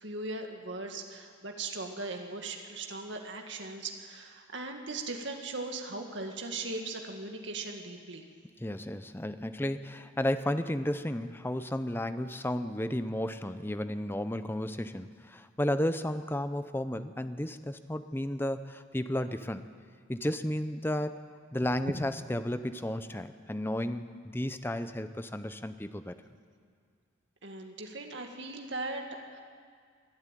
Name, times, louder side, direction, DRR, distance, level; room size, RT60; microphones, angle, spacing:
voice 1, 0.0-8.2 27.4-29.4, right 3 dB, 65° right, 3 dB, 2.0 m, -39 dB
voice 2, 8.6-19.7 20.1-21.2 21.5-26.2, left 1 dB, 10° left, 11 dB, 0.7 m, -33 dB
23.5 x 12.5 x 9.2 m, 2.1 s
head